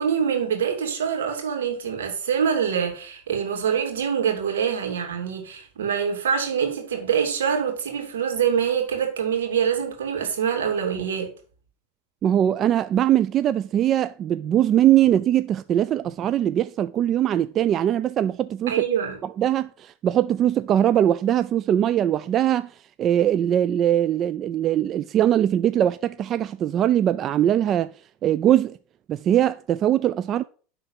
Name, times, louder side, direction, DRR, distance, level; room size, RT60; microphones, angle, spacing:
voice 1, 0.0-11.3 18.7-19.2, right 7 dB, 80° right, 2.6 m, -25 dB
voice 2, 12.2-18.8 19.2-27.9 28.2-28.8 29.1-30.4, right 11 dB, 40° right, 0.3 m, -21 dB
10.5 x 3.9 x 5.6 m
hypercardioid pair, 95°, 0 cm